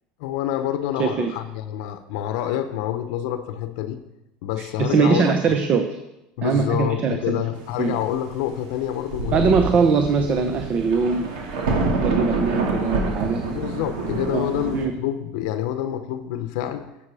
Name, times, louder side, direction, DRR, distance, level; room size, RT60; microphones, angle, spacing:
voice 1, 0.2-4.0 4.4-5.6 6.4-9.6 13.4-16.9, left 11 dB, 75° left, 10 dB, 0.8 m, -27 dB
voice 2, 1.0-1.3 4.6-6.0 6.4-7.4 7.8-7.9 9.3-11.3 12.0-13.4 14.3-14.5 14.7-14.9, right 5 dB, 40° right, 6 dB, 1.0 m, -21 dB
Thunder, 8.7-8.8 9.1-14.9, right 3 dB, 80° right, 2.4 m, -26 dB
10.5 x 7.8 x 4.9 m, 0.93 s
supercardioid pair, 110°, 4 cm